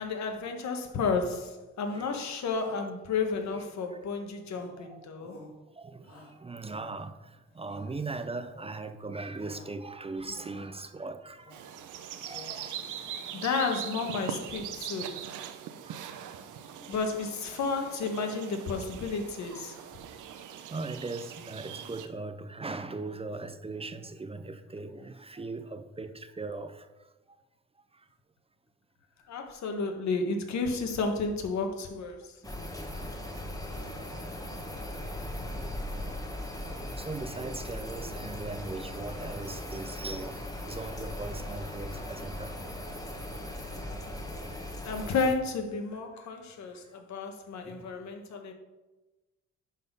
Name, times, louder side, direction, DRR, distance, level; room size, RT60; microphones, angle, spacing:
voice 1, 0.0-5.4 13.3-15.2 16.9-19.8 29.3-32.3 33.7-34.1 44.8-48.5, left 4 dB, 65° left, 1.4 m, -32 dB
Shout, 1.1-1.5 1.8-2.2 2.5-2.9 3.3-4.0 4.5-4.9 5.2-5.6 6.0-7.1 7.5-7.9 8.3-8.8 9.2-9.8 10.1-10.8 11.3-11.7 12.1-12.7 13.0-13.5 13.8-14.6, left 2 dB, 45° left, 3.0 m, -53 dB
voice 2, 1.9-2.3 3.9-4.0 4.8-5.1 5.8-11.5 12.2-12.8 13.4-13.5 15.8-16.0 16.4-16.9 20.4-20.5 20.7-26.9 32.5-32.6 33.0-33.1 33.3-33.5 34.3-34.7 36.0-36.4 36.7-40.4 40.7-42.5 47.6-47.9, right 3 dB, 20° right, 0.5 m, -40 dB
sound 1, 11.5-22.1, right 9 dB, 80° right, 0.8 m, -41 dB
sound 2, 32.4-45.3, left 1 dB, 10° left, 1.5 m, -38 dB
11.0 x 4.2 x 5.4 m
cardioid pair, 90°, 30 cm